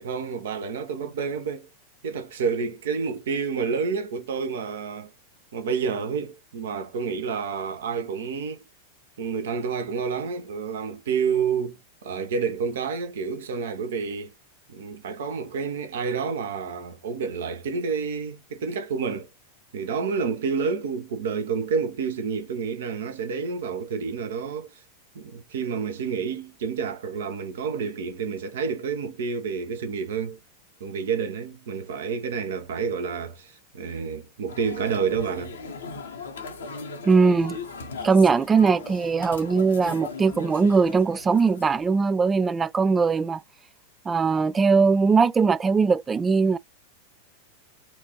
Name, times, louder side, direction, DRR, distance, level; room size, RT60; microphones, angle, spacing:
voice 1, 0.0-1.7 2.0-5.1 5.5-8.6 9.2-14.3 14.7-19.3 19.7-24.7 25.1-30.4 30.8-35.6, right 5 dB, 60° right, 1.0 m, -29 dB
sound 1, 34.5-41.9, left 4 dB, 65° left, 1.0 m, -39 dB
voice 2, 37.0-37.6 38.0-43.4 44.1-46.6, right 5 dB, 15° right, 0.3 m, -20 dB
4.5 x 2.6 x 3.0 m
figure-of-eight pair, 90°, 0 cm